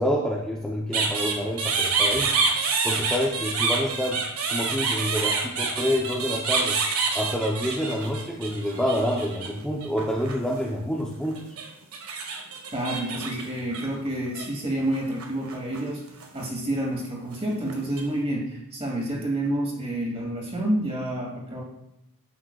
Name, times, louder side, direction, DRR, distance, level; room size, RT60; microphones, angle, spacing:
voice 1, 0.0-2.4 2.8-4.2 4.5-6.8 7.1-11.4, equal, 5° left, -3 dB, 0.8 m, -27 dB
sound 1, 0.9-9.5 9.8-10.8 11.4-14.5 14.9-15.8 16.1-16.4 17.3-18.0, right 4 dB, 70° right, 1.5 m, -27 dB
voice 2, 12.7-16.0 16.3-21.6, right 1 dB, 25° right, -3 dB, 2.7 m, -29 dB
11.5 x 8.9 x 2.5 m, 0.85 s
head